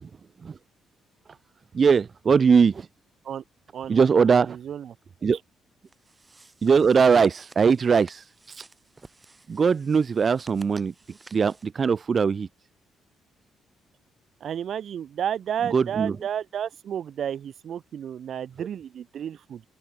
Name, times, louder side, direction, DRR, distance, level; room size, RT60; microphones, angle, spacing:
voice 1, 1.7-2.9 3.9-4.6 5.2-5.4 6.6-8.6 9.5-10.9 11.3-12.5 15.7-16.1, right 6 dB, 40° right, 0.4 m, -21 dB
voice 2, 4.3-5.0 14.4-19.6, right 9 dB, 60° right, 1.2 m, -32 dB
sound 1, 5.8-11.7, right 3 dB, 20° right, 3.3 m, -53 dB
open air
cardioid pair, 90°, 0 cm